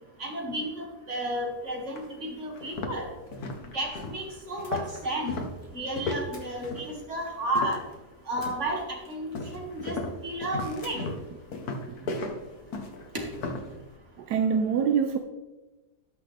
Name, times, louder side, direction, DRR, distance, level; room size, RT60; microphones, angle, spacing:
voice 1, 0.2-3.1 3.7-5.3 5.7-7.8 8.3-11.1 13.1-13.2, right 1 dB, 45° right, 2.4 m, -32 dB
sound 1, 1.4-1.5 2.0-2.1 2.5-8.0 8.4-8.8 9.3-13.7, left 2 dB, 70° left, 1.7 m, -35 dB
Splash splatter, 4.6-5.8 6.3-7.5 8.4-9.7 10.8-11.3 11.6-11.8, left 2 dB, 40° left, 2.4 m, -55 dB
voice 2, 11.9-12.3 14.2-15.2, right 6 dB, 85° right, 1.3 m, -26 dB
17.5 x 6.1 x 3.4 m
omnidirectional pair, 1.7 m